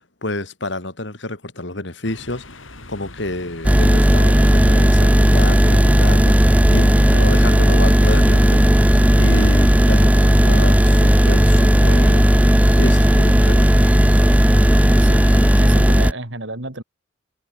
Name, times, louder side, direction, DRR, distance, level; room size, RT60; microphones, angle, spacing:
voice 1, 0.2-12.3 12.7-13.7, left 2 dB, 65° left, 3.0 m, -29 dB
sound 1, 2.0-15.7, left 2 dB, 80° left, 5.8 m, -39 dB
sound 2, 3.6-16.1, equal, 5° right, 0.6 m, -13 dB
voice 2, 7.1-7.4 15.0-15.2 15.6-16.8, right 2 dB, 70° right, 3.6 m, -31 dB
head